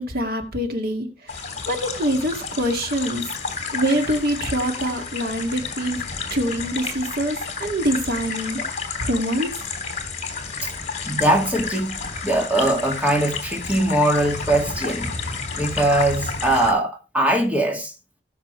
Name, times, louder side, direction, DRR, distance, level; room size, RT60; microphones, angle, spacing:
voice 1, 0.0-3.3 3.7-6.0 6.3-9.6, equal, 55° right, 2.2 m, -25 dB
sound 1, 1.3-16.7, left 4 dB, 40° left, 3.4 m, -31 dB
voice 2, 11.1-12.0 12.2-17.9, right 1 dB, 10° right, 2.2 m, -21 dB
17.5 x 7.2 x 3.2 m
head